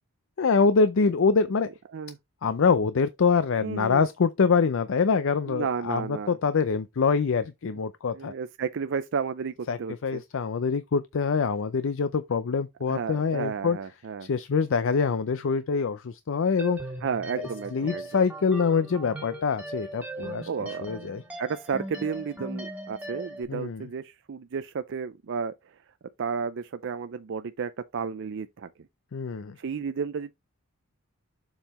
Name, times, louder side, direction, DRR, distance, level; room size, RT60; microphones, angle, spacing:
voice 1, 0.4-1.7 2.4-8.3 9.7-13.8 14.3-16.8 17.7-21.2 23.5-23.9 29.1-29.6, left 5 dB, 65° left, 0.5 m, -25 dB
voice 2, 3.6-4.0 5.5-6.4 8.1-10.2 12.9-14.3 17.0-18.3 20.5-20.9 21.4-25.7 26.2-28.7 29.6-30.3, right 6 dB, 60° right, 0.4 m, -32 dB
sound 1, 16.6-23.4, right 2 dB, 5° right, 1.7 m, -39 dB
7.2 x 5.5 x 3.0 m
head